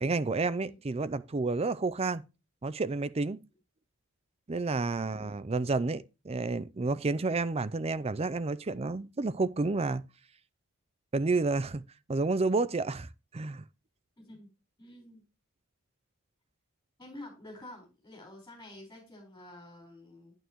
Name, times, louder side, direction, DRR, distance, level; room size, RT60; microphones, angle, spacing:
voice 1, 0.0-2.2 2.6-3.4 4.5-10.0 11.1-11.8 12.1-13.6, right 3 dB, 25° right, 0.5 m, -30 dB
voice 2, 14.2-14.5 14.8-15.2 17.0-20.3, left 1 dB, 15° left, 4.7 m, -49 dB
9.1 x 9.0 x 3.0 m
head